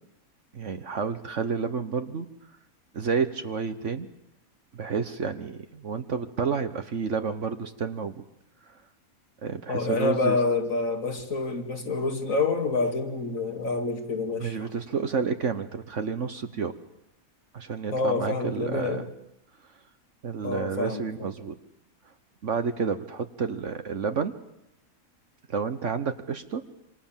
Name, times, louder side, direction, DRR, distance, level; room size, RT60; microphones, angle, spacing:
voice 1, 0.5-2.3 2.9-4.1 4.7-8.1 9.4-10.4 14.4-16.7 17.5-19.0 20.2-21.5 22.4-24.3 25.5-26.6, right 5 dB, 60° right, 9 dB, 1.5 m, -30 dB
voice 2, 9.7-14.7 17.9-19.1 20.4-21.1, left 3 dB, 65° left, 6 dB, 2.9 m, -27 dB
27.0 x 26.5 x 7.4 m, 0.83 s
omnidirectional pair, 1.5 m